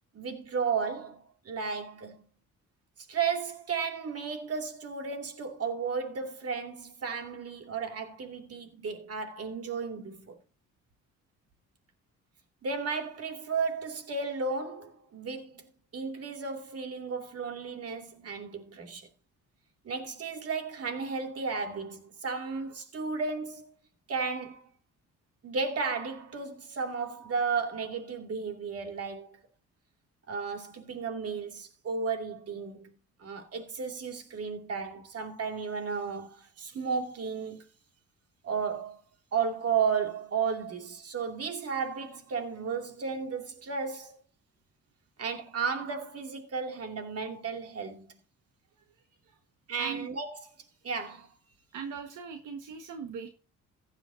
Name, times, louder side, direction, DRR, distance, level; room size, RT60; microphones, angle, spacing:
voice 1, 0.1-2.2 3.1-10.4 12.6-19.1 19.8-23.7 24.1-24.7 25.4-29.4 30.3-32.9 33.2-37.6 38.4-39.0 39.3-44.2 45.2-48.1 49.7-50.4 50.8-51.3, right 5 dB, 50° right, 2.7 m, -34 dB
voice 2, 49.8-50.1 51.7-53.3, right 6 dB, 80° right, 1.6 m, -40 dB
15.0 x 10.0 x 2.7 m
cardioid pair, 90°, 30 cm